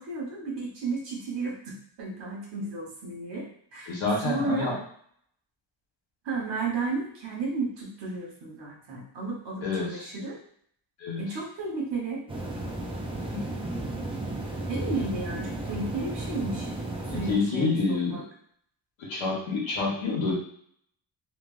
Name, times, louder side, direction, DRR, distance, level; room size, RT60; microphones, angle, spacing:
voice 1, 0.0-3.5 3.7-3.9 4.2-4.8 6.2-10.4 11.2-12.2 14.7-16.7 17.1-18.2, right 3 dB, 70° right, -2 dB, 1.1 m, -33 dB
voice 2, 3.9-4.7 9.6-10.0 11.0-11.2 13.3-13.5 17.1-18.2 19.0-20.3, left 3 dB, 90° left, -3 dB, 1.2 m, -28 dB
sound 1, 12.3-17.4, right 2 dB, 15° right, 0.3 m, -34 dB
3.3 x 2.2 x 2.4 m, 0.63 s
cardioid pair, 130°, 45 cm